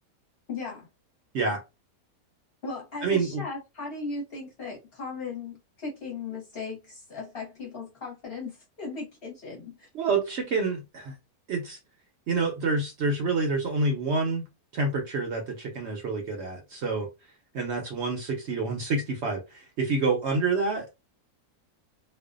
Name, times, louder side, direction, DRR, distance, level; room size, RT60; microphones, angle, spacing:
voice 1, 0.5-0.9 2.6-9.9, left 3 dB, 45° left, 0.9 m, -37 dB
voice 2, 3.0-3.4 9.9-11.1 11.5-11.8 12.3-14.4 14.7-17.1 17.5-21.0, right 3 dB, 60° right, 0.7 m, -28 dB
2.5 x 2.1 x 2.4 m
omnidirectional pair, 1.6 m